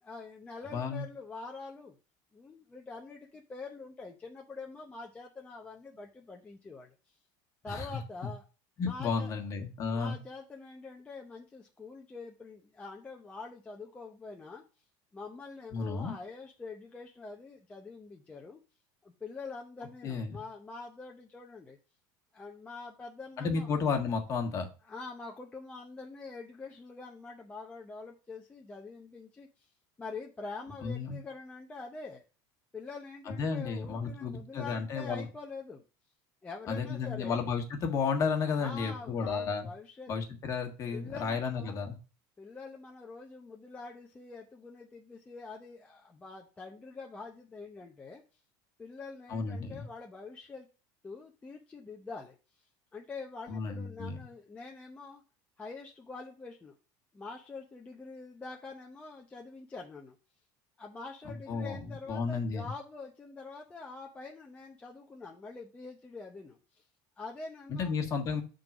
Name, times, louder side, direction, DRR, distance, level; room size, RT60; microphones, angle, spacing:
voice 1, 0.0-1.9 2.3-7.1 7.6-8.4 8.9-9.3 9.9-14.6 15.1-18.6 19.0-21.8 22.3-23.7 24.8-29.7 30.0-32.2 32.7-35.8 36.4-37.4 38.4-40.1 40.9-41.8 42.4-48.2 48.8-50.7 51.0-52.7 52.9-55.2 55.6-56.7 57.1-60.1 60.8-66.8 67.2-67.9, left 4 dB, 15° left, 0 dB, 0.7 m, -45 dB
voice 2, 0.7-1.0 7.7-8.0 8.8-10.2 15.7-16.1 20.0-20.4 23.4-24.7 30.8-31.2 33.3-35.3 36.7-39.7 40.1-42.0 49.3-49.9 53.5-54.2 61.2-61.8 62.1-62.7 67.7-68.4, left 5 dB, 35° left, 4 dB, 1.5 m, -32 dB
7.2 x 3.9 x 6.0 m, 0.33 s
cardioid pair, 155°, 10 cm